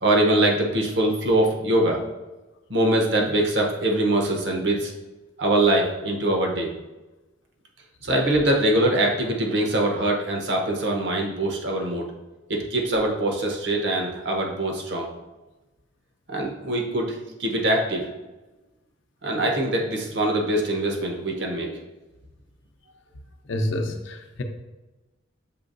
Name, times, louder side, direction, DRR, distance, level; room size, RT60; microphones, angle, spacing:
voice 1, 0.0-2.0 2.7-4.9 5.4-6.7 8.0-12.0 12.5-15.1 16.3-18.0 19.2-21.8, right 1 dB, 65° right, 1 dB, 0.8 m, -23 dB
voice 2, 23.5-24.4, left 1 dB, 75° left, 4 dB, 0.5 m, -28 dB
6.8 x 2.9 x 2.6 m, 1.1 s
head